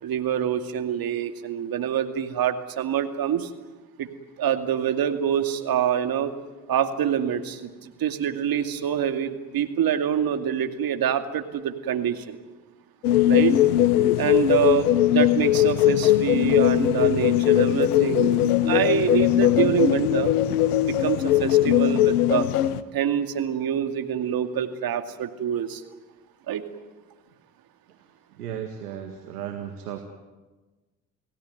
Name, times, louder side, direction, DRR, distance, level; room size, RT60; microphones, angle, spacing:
voice 1, 0.0-3.5 4.0-4.1 4.4-6.3 6.7-12.4 13.3-13.6 14.2-20.3 20.7-22.5 22.9-25.8 26.5-26.6, right 9 dB, 50° right, 7 dB, 2.5 m, -26 dB
sound 1, 13.0-22.8, left 12 dB, 85° left, 0.9 m, -20 dB
voice 2, 28.3-30.0, right 9 dB, 90° right, 5 dB, 2.0 m, -35 dB
29.5 x 17.5 x 9.5 m, 1.2 s
hypercardioid pair, 60°, 44 cm